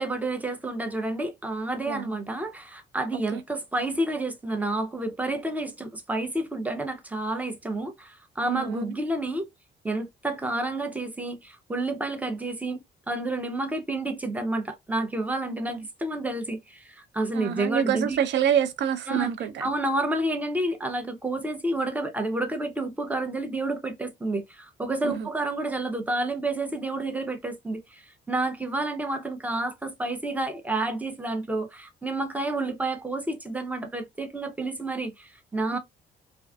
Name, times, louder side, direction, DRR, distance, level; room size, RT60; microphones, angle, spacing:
voice 1, 0.0-9.5 9.8-12.8 13.1-18.2 19.1-19.3 19.6-35.8, right 2 dB, 10° right, 0.6 m, -30 dB
voice 2, 8.5-8.9 15.7-15.9 17.3-19.7 25.0-25.3 35.7-35.8, right 9 dB, 65° right, 0.5 m, -27 dB
2.4 x 2.3 x 2.2 m
cardioid pair, 90°, 20 cm